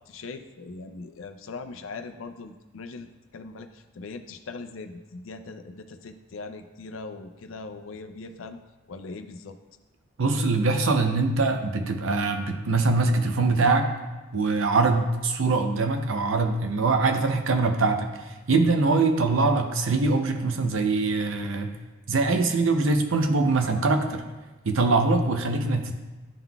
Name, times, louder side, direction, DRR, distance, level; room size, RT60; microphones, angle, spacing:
voice 1, 0.1-8.6 8.9-9.6, left 3 dB, 75° left, 8 dB, 0.5 m, -40 dB
voice 2, 10.2-13.9 14.3-21.7 22.1-24.2 24.6-25.9, right 3 dB, 70° right, 6 dB, 0.6 m, -23 dB
11.0 x 3.8 x 2.3 m, 1.2 s
head